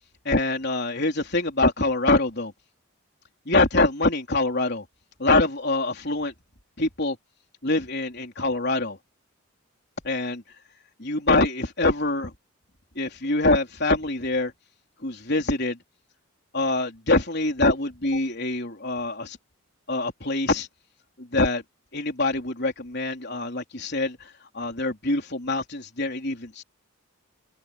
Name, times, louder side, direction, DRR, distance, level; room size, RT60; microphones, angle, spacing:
voice 1, 0.2-2.5 3.5-4.8 5.2-6.3 6.8-7.2 7.6-9.0 10.0-10.4 11.0-12.3 13.0-14.5 15.0-15.8 16.5-19.4 19.9-20.7 21.2-21.6 21.9-26.6, left 2 dB, 50° left, 4.0 m, -24 dB
head